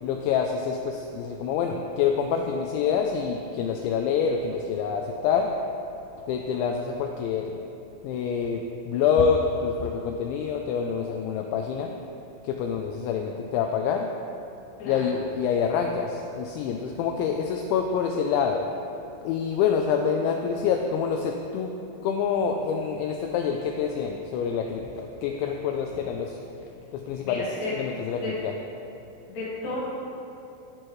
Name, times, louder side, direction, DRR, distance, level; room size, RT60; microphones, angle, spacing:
voice 1, 0.0-5.5 6.3-7.6 8.0-11.9 12.4-14.1 14.9-18.6 19.2-21.7 22.0-26.4 26.9-28.6, left 6 dB, 90° left, 3 dB, 2.6 m, -26 dB
voice 2, 27.2-27.7 28.2-28.3 29.3-29.8, left 3 dB, 55° left, -7 dB, 3.1 m, -33 dB
16.0 x 6.2 x 3.1 m, 2.8 s
omnidirectional pair, 5.8 m